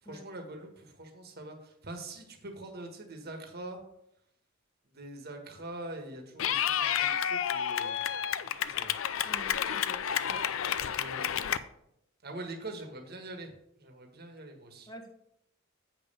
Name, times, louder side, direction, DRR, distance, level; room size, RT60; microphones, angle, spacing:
voice 1, 0.0-3.8 4.9-8.9 10.8-11.5 12.2-13.5 13.8-14.9, right 2 dB, 50° right, 3 dB, 1.4 m, -44 dB
Clapping / Cheering, 6.4-11.6, left 9 dB, 70° left, 0.4 m, -30 dB
voice 2, 9.2-10.0 10.3-10.5 14.9-15.1, equal, 20° left, 3 dB, 1.1 m, -48 dB
8.0 x 5.4 x 5.4 m, 0.76 s
head